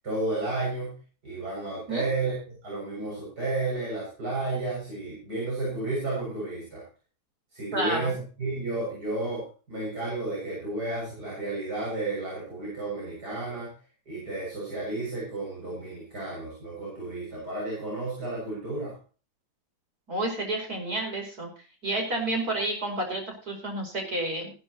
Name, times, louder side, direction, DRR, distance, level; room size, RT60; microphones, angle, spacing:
voice 1, 0.0-1.0 1.2-6.8 7.5-9.4 9.7-13.7 14.1-18.9, right 2 dB, 85° right, -6 dB, 7.9 m, -32 dB
voice 2, 7.7-8.1 20.1-21.5 21.8-24.5, right 2 dB, 65° right, 1 dB, 5.7 m, -30 dB
16.0 x 11.5 x 3.1 m, 0.37 s
omnidirectional pair, 1.7 m